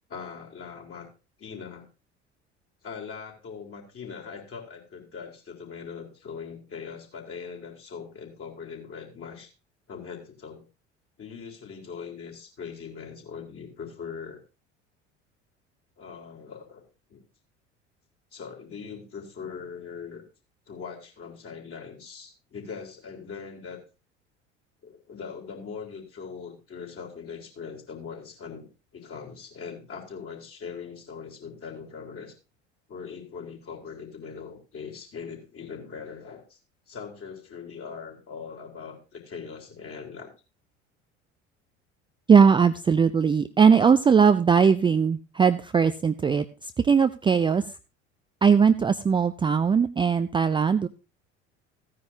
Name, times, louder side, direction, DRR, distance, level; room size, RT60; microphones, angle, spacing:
voice 1, 0.1-1.1 1.4-1.8 2.8-9.5 9.9-10.6 11.2-14.4 16.0-16.8 17.1-17.2 18.3-20.2 20.7-23.8 24.8-32.3 32.9-36.6 36.9-40.3, left 6 dB, 40° left, 1 dB, 3.8 m, -41 dB
voice 2, 42.3-47.6 48.4-50.9, right 6 dB, 15° right, 10 dB, 0.4 m, -20 dB
15.0 x 9.6 x 2.8 m, 0.30 s
figure-of-eight pair, 65°, 36 cm